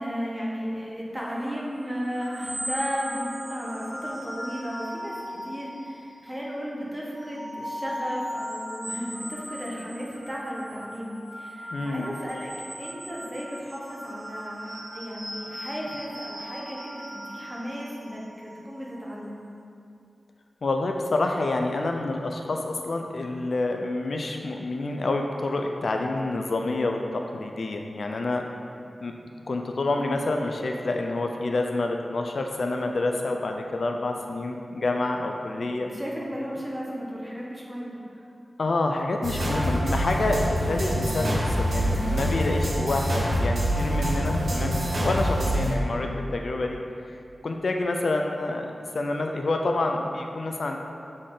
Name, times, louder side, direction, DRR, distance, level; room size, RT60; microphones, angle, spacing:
voice 1, 0.0-19.4 29.8-30.2 35.7-38.2 45.8-46.1, equal, 10° right, -4 dB, 1.1 m, -35 dB
sound 1, 1.2-6.5 6.9-19.2, equal, 50° right, 0.9 m, -38 dB
voice 2, 11.7-12.1 20.6-28.4 29.0-29.1 29.5-35.9 38.6-46.8 47.4-50.8, left 2 dB, 65° left, 3 dB, 0.4 m, -28 dB
sound 2, 39.2-45.7, equal, 85° right, 1.2 m, -25 dB
6.4 x 4.2 x 3.8 m, 2.5 s
wide cardioid pair, 110°, 0 cm